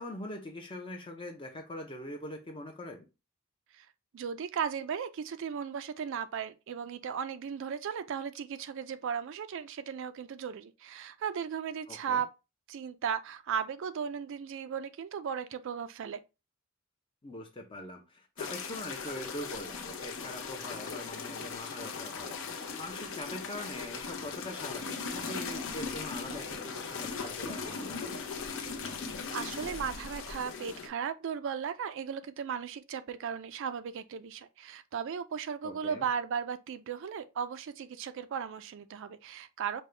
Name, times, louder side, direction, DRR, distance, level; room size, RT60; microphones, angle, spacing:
voice 1, 0.0-3.0 11.9-12.2 17.2-28.2 35.6-36.0, left 1 dB, 25° left, 0.5 m, -43 dB
voice 2, 4.1-12.3 12.7-16.2 29.3-39.8, right 7 dB, 60° right, 0.4 m, -36 dB
sound 1, 18.4-30.9, left 5 dB, 65° left, 0.7 m, -39 dB
5.3 x 2.2 x 3.2 m
head